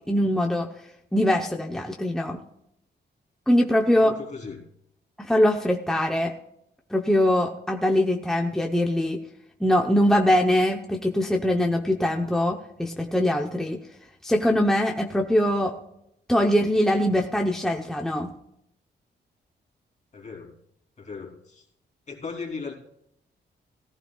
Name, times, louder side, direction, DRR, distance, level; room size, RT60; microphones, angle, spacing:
voice 1, 0.1-0.7 1.1-2.4 3.5-4.1 5.2-6.3 6.9-9.2 9.6-13.8 14.2-15.7 16.3-18.3, left 1 dB, 5° left, 1 dB, 0.9 m, -22 dB
voice 2, 4.0-4.7 20.1-20.5 21.0-21.6 22.1-22.7, left 4 dB, 40° left, 0 dB, 3.2 m, -37 dB
17.5 x 15.0 x 2.4 m, 0.77 s
wide cardioid pair, 155°, 18 cm